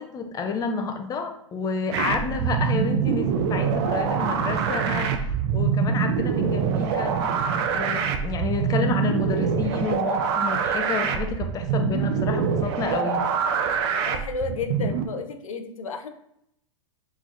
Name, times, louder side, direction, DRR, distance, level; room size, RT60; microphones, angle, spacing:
voice 1, 0.0-7.1 7.7-13.2, left 5 dB, 20° left, 6 dB, 0.5 m, -30 dB
sound 1, 1.9-15.0, right 6 dB, 50° right, 0.5 m, -25 dB
voice 2, 8.4-8.7 13.9-16.1, left 4 dB, 90° left, 6 dB, 0.5 m, -33 dB
3.8 x 3.1 x 2.4 m, 0.76 s
hypercardioid pair, 110°, 17 cm